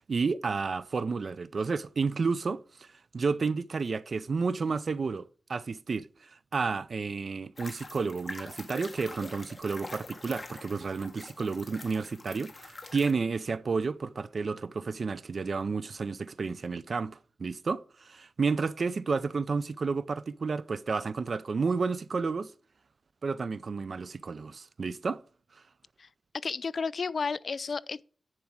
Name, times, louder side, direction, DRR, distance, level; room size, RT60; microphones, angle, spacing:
voice 1, 0.1-2.9 3.1-22.5 23.2-25.2, right 4 dB, 55° right, 0.5 m, -31 dB
sound 1, 7.6-13.1, left 2 dB, 30° left, 1.3 m, -45 dB
voice 2, 26.4-28.0, left 5 dB, 60° left, 0.3 m, -32 dB
10.5 x 4.7 x 6.2 m
wide cardioid pair, 95°, 0 cm